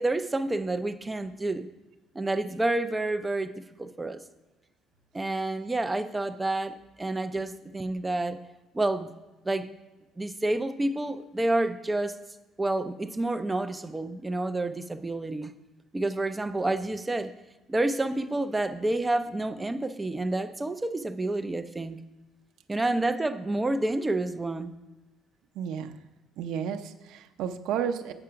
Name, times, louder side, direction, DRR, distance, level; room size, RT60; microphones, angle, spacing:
voice 1, 0.0-1.7 2.1-4.2 5.1-8.4 8.7-9.1 9.4-9.7 10.2-12.2 12.6-15.5 15.9-17.3 17.7-22.0 22.7-24.7, right 2 dB, 10° right, 10 dB, 0.4 m, -29 dB
voice 2, 25.6-26.0 26.4-28.1, right 8 dB, 75° right, 7 dB, 0.6 m, -32 dB
8.8 x 5.9 x 5.7 m, 1.1 s
cardioid pair, 155°, 0 cm